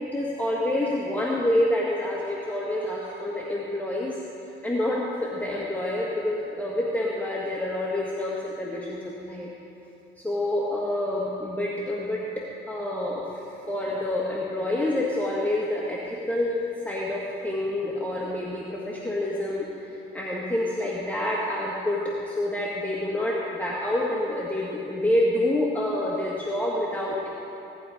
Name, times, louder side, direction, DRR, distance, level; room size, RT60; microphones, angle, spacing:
voice 1, 0.1-4.2 4.6-9.5 10.2-13.4 13.7-27.3, left 1 dB, 10° left, -5 dB, 1.8 m, -27 dB
16.5 x 11.5 x 5.1 m, 3.0 s
cardioid pair, 90°, 20 cm